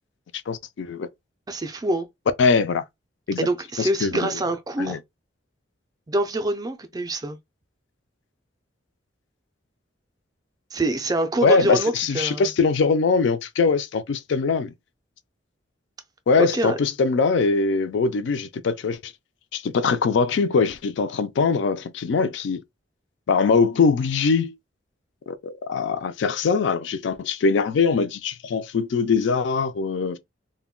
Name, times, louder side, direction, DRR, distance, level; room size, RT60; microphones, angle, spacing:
voice 1, 0.5-1.1 2.4-2.8 3.3-3.5 3.8-4.3 4.8-5.0 11.4-14.7 16.3-19.1 19.5-22.6 23.3-24.5 25.3-30.2, left 4 dB, 70° left, 0.3 m, -22 dB
voice 2, 1.5-2.1 3.4-5.0 6.1-7.4 10.7-12.5 16.4-16.8, right 1 dB, 20° right, 0.3 m, -25 dB
2.1 x 2.1 x 3.6 m
head